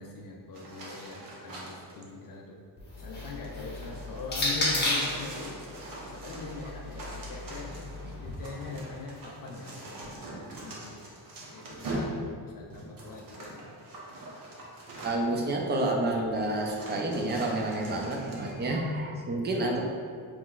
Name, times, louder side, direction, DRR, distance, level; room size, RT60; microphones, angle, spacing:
voice 1, 0.0-2.6 3.0-5.6 6.0-7.8 8.2-11.1 11.5-13.6, left 4 dB, 55° left, 0 dB, 0.5 m, -42 dB
sound 1, 0.5-2.0 3.0-15.4 16.1-16.2 16.6-18.5, right 1 dB, 50° right, 0.9 m, -42 dB
sound 2, 2.8-5.2 6.2-8.3, left 1 dB, 25° left, 0.8 m, -33 dB
voice 2, 15.0-19.8, right 1 dB, 25° right, 0 dB, 0.4 m, -29 dB
5.7 x 3.1 x 2.3 m, 2.2 s
wide cardioid pair, 165°, 42 cm